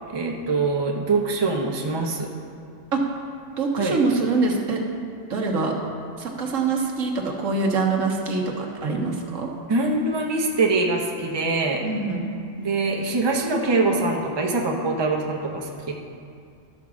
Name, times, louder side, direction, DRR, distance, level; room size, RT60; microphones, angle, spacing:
voice 1, 0.1-2.3 3.8-4.0 9.7-11.8 12.6-15.9, right 3 dB, 25° right, 1 dB, 0.8 m, -23 dB
voice 2, 3.6-4.8 5.3-5.7 6.2-7.1 7.4-9.5 11.8-12.2, right 4 dB, 75° right, 1 dB, 1.4 m, -24 dB
12.0 x 4.7 x 6.2 m, 2.4 s
omnidirectional pair, 1.4 m